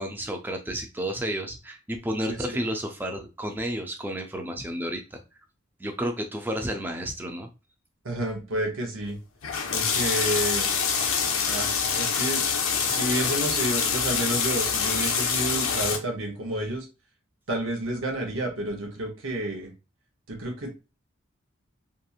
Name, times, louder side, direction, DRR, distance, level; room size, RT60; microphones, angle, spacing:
voice 1, 0.0-5.2 5.8-7.5, equal, 10° right, 4 dB, 0.4 m, -31 dB
voice 2, 2.3-2.6 8.0-9.2 9.7-10.7 11.5-12.5 12.8-16.9 17.5-19.7 20.3-20.8, right 1 dB, 80° right, 1 dB, 0.8 m, -30 dB
sound 1, 9.4-16.0, left 6 dB, 90° left, 0.6 m, -25 dB
2.9 x 2.5 x 2.3 m, 0.29 s
head